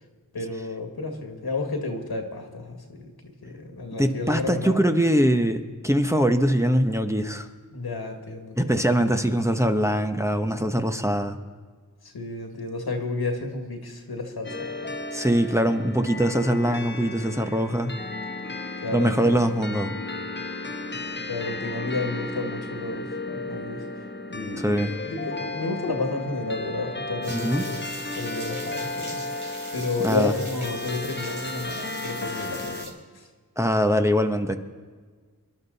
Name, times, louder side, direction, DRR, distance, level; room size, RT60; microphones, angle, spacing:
voice 1, 0.3-4.9 7.7-8.6 12.0-14.9 18.8-19.3 21.3-24.7 25.0-27.8 28.1-33.3, left 3 dB, 80° left, 3 dB, 2.0 m, -32 dB
voice 2, 4.0-7.5 8.6-11.4 15.1-17.9 18.9-19.9 24.6-25.0 27.3-27.6 30.0-30.3 33.6-34.6, equal, 10° right, 5 dB, 1.0 m, -22 dB
sound 1, 14.4-32.9, left 2 dB, 30° left, 1.4 m, -34 dB
sound 2, 27.2-32.9, right 2 dB, 60° right, 3.9 m, -41 dB
24.5 x 11.5 x 4.1 m, 1.5 s
cardioid pair, 50°, 37 cm